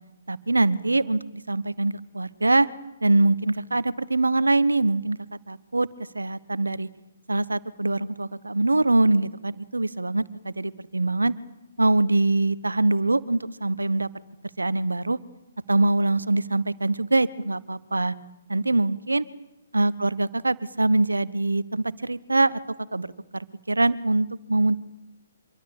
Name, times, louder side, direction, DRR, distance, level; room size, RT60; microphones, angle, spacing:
voice 1, 0.3-2.7 3.0-5.2 5.5-5.9 6.1-6.9 7.3-11.3 11.8-14.1 14.6-15.2 15.7-18.1 18.5-19.3 19.7-22.6 22.9-23.1 23.3-24.8, right 2 dB, 80° right, 18 dB, 1.3 m, -23 dB
26.0 x 23.0 x 8.7 m, 0.92 s
figure-of-eight pair, 130°, 0 cm